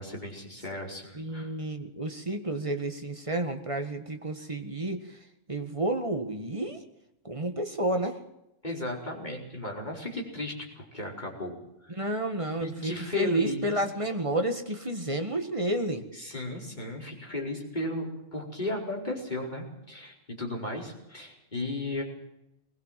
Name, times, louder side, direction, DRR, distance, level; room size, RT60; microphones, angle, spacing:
voice 1, 0.0-1.5 8.6-11.6 11.8-11.9 12.6-13.8 16.1-22.0, left 1 dB, 35° left, -1 dB, 5.0 m, -35 dB
voice 2, 1.1-5.0 5.5-6.8 7.2-8.2 11.9-16.0, right 1 dB, 25° right, 6 dB, 1.8 m, -30 dB
21.0 x 19.5 x 7.6 m, 0.86 s
omnidirectional pair, 1.3 m